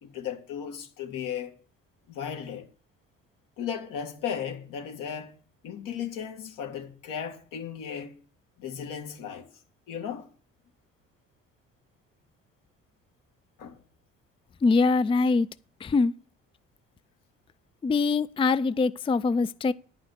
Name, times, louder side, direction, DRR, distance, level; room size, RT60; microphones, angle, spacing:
voice 1, 0.0-1.5 2.1-2.7 3.6-5.4 5.6-8.2 8.6-9.5 9.9-10.3 13.6-13.8, left 8 dB, 80° left, 1.9 m, -35 dB
voice 2, 14.6-15.5 15.8-16.1 17.8-19.7, left 4 dB, 15° left, 0.4 m, -23 dB
10.0 x 5.8 x 8.0 m
supercardioid pair, 65°, 32 cm